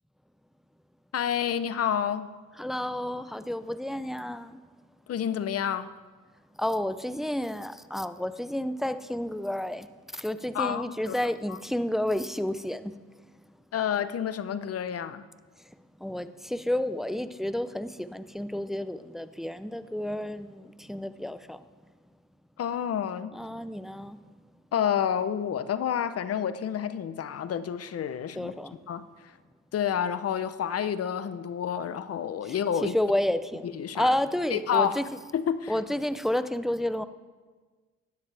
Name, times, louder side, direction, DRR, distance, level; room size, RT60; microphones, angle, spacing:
voice 1, 1.1-2.3 5.1-5.9 10.5-11.1 11.5-11.6 13.7-15.2 22.6-23.3 24.7-28.5 28.9-29.1 29.7-32.9 33.6-34.1 34.5-35.0 35.3-35.7, left 8 dB, 50° left, 13 dB, 0.8 m, -29 dB
voice 2, 2.6-4.6 6.6-12.9 16.0-21.6 23.3-24.2 28.4-28.7 32.5-32.6 32.8-35.1 35.7-37.1, left 1 dB, ahead, 12 dB, 0.5 m, -30 dB
17.0 x 12.0 x 3.4 m, 1.4 s
cardioid pair, 90°, 30 cm